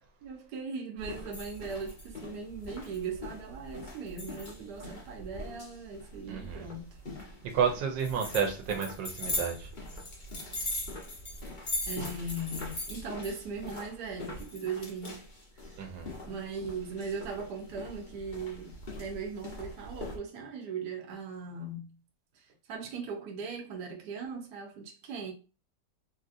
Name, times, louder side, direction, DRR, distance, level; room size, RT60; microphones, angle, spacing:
voice 1, 0.2-7.0 11.9-15.2 15.7-15.8 16.2-22.0 22.4-25.3, right 4 dB, 70° right, 1.2 m, -39 dB
sound 1, 1.0-20.2, left 1 dB, 35° left, 0.8 m, -41 dB
voice 2, 6.3-6.7 7.5-9.7 15.8-16.2, right 7 dB, 85° right, 1.4 m, -31 dB
3.2 x 2.8 x 2.5 m
omnidirectional pair, 1.9 m